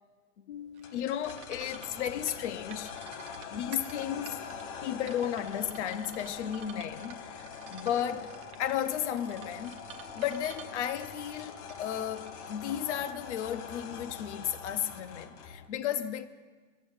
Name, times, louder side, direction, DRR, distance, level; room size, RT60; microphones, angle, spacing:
voice 1, 0.5-2.9 3.5-4.4 4.8-8.3 8.6-9.8 10.2-16.3, left 10 dB, 70° left, 0.7 m, -34 dB
sound 1, 0.8-15.7, left 6 dB, 30° left, 0.5 m, -44 dB
sound 2, 0.8-13.3, right 10 dB, 20° right, 0.4 m, -51 dB
7.6 x 7.0 x 8.0 m
supercardioid pair, 140°, 37 cm